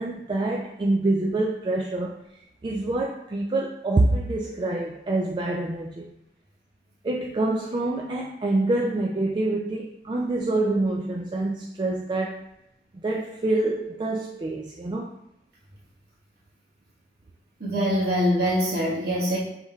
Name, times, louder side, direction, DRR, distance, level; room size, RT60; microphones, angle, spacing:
voice 1, 0.0-2.2 2.6-6.1 7.0-12.4 12.9-15.2, right 2 dB, 25° right, -1 dB, 0.3 m, -26 dB
voice 2, 17.6-19.4, equal, 60° right, -7 dB, 1.3 m, -23 dB
5.3 x 3.1 x 2.3 m, 0.82 s
head